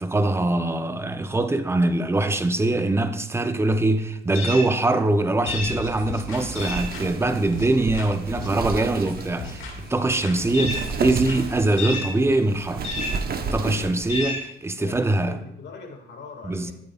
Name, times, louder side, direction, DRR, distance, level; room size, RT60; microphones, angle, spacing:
voice 1, 0.0-12.8 13.5-15.4 16.5-16.7, right 2 dB, 15° right, 0.7 m, -23 dB
sound 1, 4.3-4.7 5.5-5.8 6.5-6.9 10.5-10.9 11.8-12.1 12.8-13.2 14.1-14.4, left 3 dB, 35° left, 2.7 m, -30 dB
sound 2, 5.5-8.1 8.4-10.0 10.2-11.8, left 3 dB, 80° left, 2.1 m, -38 dB
Wind, 5.5-14.2, right 5 dB, 50° right, 1.0 m, -33 dB
voice 2, 14.8-16.7, left 4 dB, 65° left, 2.1 m, -42 dB
13.0 x 8.6 x 2.4 m
cardioid pair, 90°, 20 cm